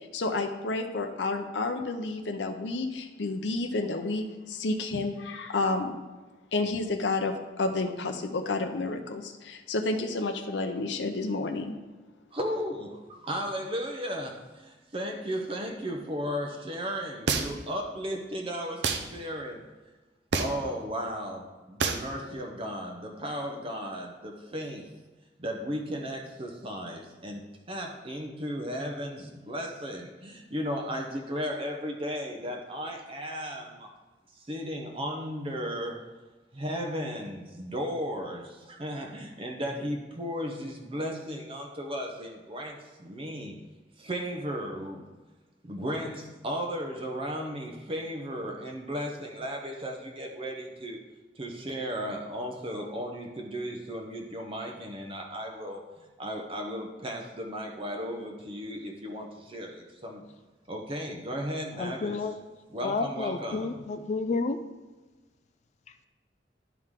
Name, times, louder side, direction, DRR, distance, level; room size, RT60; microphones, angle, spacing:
voice 1, 0.1-6.0 6.5-11.8, left 3 dB, 85° left, 5 dB, 0.7 m, -30 dB
voice 2, 12.3-19.6 20.3-24.9 25.4-33.9 34.3-36.0 36.5-43.5 44.0-45.1 45.6-51.0 51.4-55.8 56.2-60.2 60.7-62.2 62.7-63.8, equal, 30° right, 2 dB, 0.7 m, -35 dB
sound 1, 17.3-17.7 18.8-19.1 20.3-20.7 21.8-22.1, right 4 dB, 70° right, 0.7 m, -27 dB
voice 3, 61.8-62.3 62.8-64.6, left 3 dB, 40° left, 8 dB, 0.3 m, -30 dB
11.0 x 4.7 x 3.7 m, 1.2 s
head